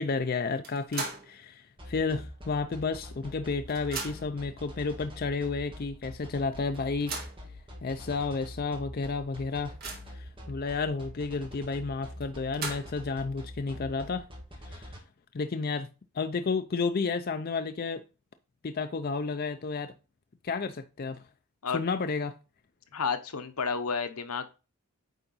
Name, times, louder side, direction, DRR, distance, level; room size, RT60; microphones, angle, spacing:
voice 1, 0.0-7.2 7.8-9.7 10.1-14.3 14.7-14.9 15.3-15.9 16.1-18.0 18.6-19.9 20.4-21.2 21.7-22.4, left 4 dB, 40° left, 0.4 m, -31 dB
sound 1, 0.6-1.4 1.8-1.9 2.9-3.0 3.3-4.4 5.2-5.3 5.7-5.8 6.7-7.4 8.1-8.2 8.6-8.7 9.2-10.3 12.2-13.1, right 3 dB, 40° right, 1.9 m, -39 dB
sound 2, 1.8-15.0, left 1 dB, 25° right, 1.8 m, -44 dB
voice 2, 22.9-24.5, left 5 dB, 85° left, 0.9 m, -31 dB
9.0 x 3.8 x 4.0 m
head